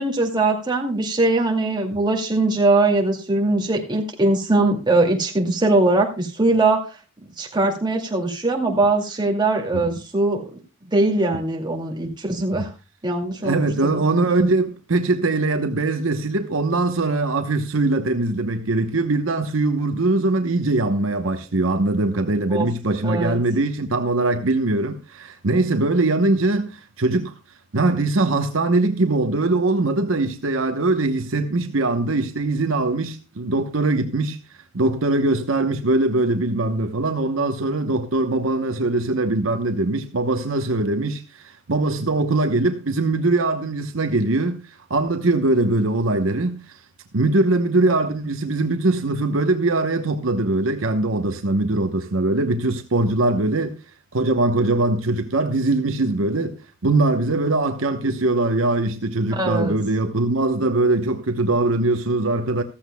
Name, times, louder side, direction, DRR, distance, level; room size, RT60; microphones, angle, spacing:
voice 1, 0.0-6.8 7.4-10.5 10.9-12.7 13.0-14.0 22.5-22.7 23.0-23.4 59.3-59.8, right 2 dB, 20° right, 2.2 m, -21 dB
voice 2, 13.4-27.3 27.7-34.4 34.7-44.6 44.9-46.8 47.1-53.8 54.1-56.6 56.8-62.6, right 2 dB, 70° right, 1.0 m, -21 dB
14.5 x 14.5 x 2.2 m
head